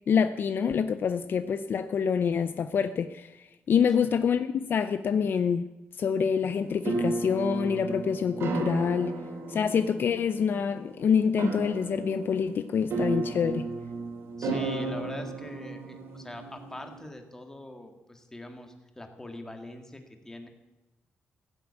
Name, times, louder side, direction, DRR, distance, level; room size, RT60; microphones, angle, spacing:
voice 1, 0.1-5.7 6.0-9.1 9.5-13.7, left 7 dB, 50° left, 11 dB, 0.5 m, -26 dB
sound 1, 6.5-17.0, right 3 dB, 70° right, 3.4 m, -34 dB
voice 2, 14.4-20.5, left 1 dB, 10° left, 5 dB, 1.9 m, -43 dB
15.5 x 8.0 x 8.3 m, 1.1 s
cardioid pair, 125°, 4 cm